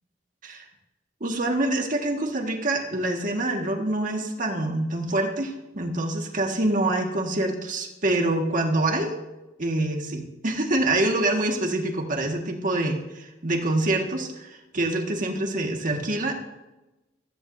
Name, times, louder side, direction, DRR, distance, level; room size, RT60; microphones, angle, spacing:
voice 1, 1.2-9.1 9.6-16.3, right 2 dB, 45° right, 2 dB, 1.7 m, -26 dB
15.5 x 14.5 x 2.7 m, 1.0 s
head